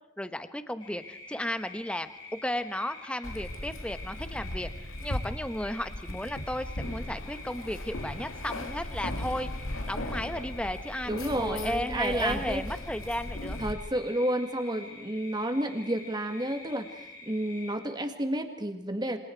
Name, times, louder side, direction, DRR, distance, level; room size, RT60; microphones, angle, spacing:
voice 1, 0.2-4.7 5.0-13.6, left 1 dB, 5° left, 10 dB, 1.1 m, -34 dB
sound 1, 0.8-17.7, left 3 dB, 25° left, 6.8 m, -47 dB
Keys jangling, 3.2-13.7, left 1 dB, 80° left, 2.3 m, -37 dB
voice 2, 11.1-12.6 13.6-19.2, right 1 dB, 20° right, 7 dB, 2.0 m, -31 dB
28.0 x 26.5 x 4.7 m, 0.96 s
head